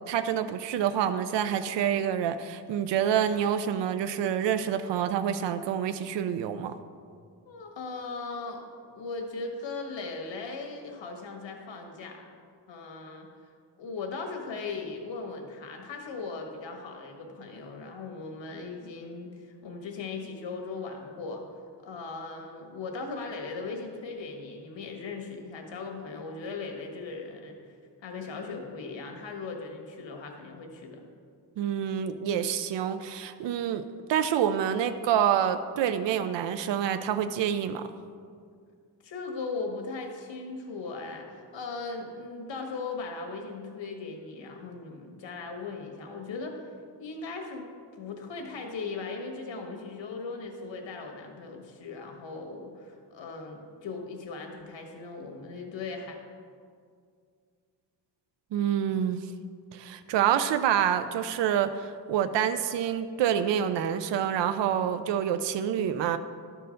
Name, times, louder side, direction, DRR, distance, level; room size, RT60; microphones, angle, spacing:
voice 1, 0.1-6.8 31.6-33.8 34.1-37.9 58.5-59.3 59.7-66.2, right 9 dB, 75° right, 11 dB, 0.5 m, -27 dB
voice 2, 7.5-12.2 12.7-13.5 13.8-21.4 21.8-27.7 28.0-31.0 39.0-46.6 47.0-56.2, left 4 dB, 90° left, 3 dB, 1.5 m, -38 dB
12.0 x 4.6 x 6.3 m, 2.2 s
wide cardioid pair, 160°, 43 cm